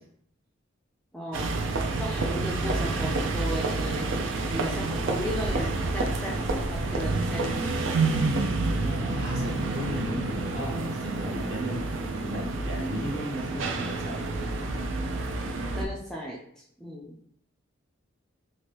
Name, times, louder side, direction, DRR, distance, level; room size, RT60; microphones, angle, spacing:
voice 1, 1.1-4.2 4.5-7.6 15.7-16.4 16.8-17.2, equal, 5° left, -4 dB, 0.3 m, -36 dB
sound 1, 1.3-15.9, right 3 dB, 70° right, 0.4 m, -29 dB
voice 2, 8.7-11.8 12.2-14.2, equal, 50° right, -3 dB, 1.0 m, -35 dB
3.1 x 2.5 x 2.9 m, 0.67 s
head